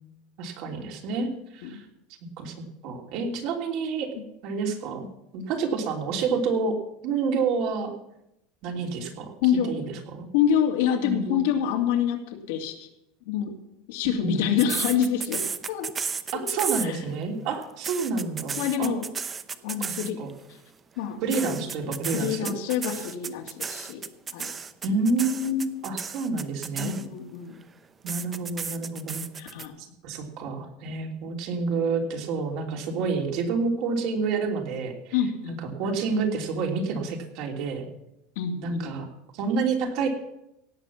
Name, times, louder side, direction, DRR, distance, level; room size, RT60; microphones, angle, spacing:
voice 1, 0.4-1.8 2.4-2.5 2.8-4.1 4.4-5.1 5.3-6.8 7.0-7.9 8.6-9.3 9.7-10.3 11.0-11.4 14.2-14.4 16.3-18.9 19.8-20.3 21.2-22.5 24.8-27.0 28.0-29.2 29.8-35.2 35.5-37.9 38.6-39.1 39.3-40.1, right 4 dB, 55° right, 2 dB, 3.0 m, -28 dB
voice 2, 9.4-9.9 10.3-12.9 13.2-13.5 13.9-15.9 16.3-16.5 16.8-17.0 18.6-19.0 19.6-20.2 21.0-21.6 22.1-24.0 24.3-24.5 26.8-27.6 29.4-29.8 35.1-35.6 38.4-39.0, left 9 dB, 75° left, 3 dB, 2.5 m, -27 dB
sound 1, 14.6-17.2 17.6-20.3 21.3-27.3 28.1-29.7, right 5 dB, 20° right, 0.7 m, -33 dB
17.0 x 7.6 x 7.3 m, 0.83 s
supercardioid pair, 150°, 0 cm